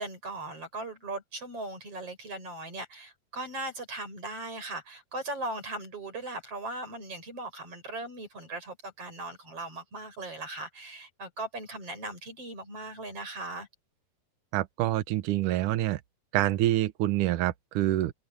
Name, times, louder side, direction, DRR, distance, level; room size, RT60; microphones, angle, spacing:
voice 1, 0.0-13.7, right 2 dB, 35° right, 8.8 m, -38 dB
voice 2, 14.5-16.0 16.3-18.1, right 14 dB, 80° right, 1.8 m, -26 dB
omnidirectional pair, 4.8 m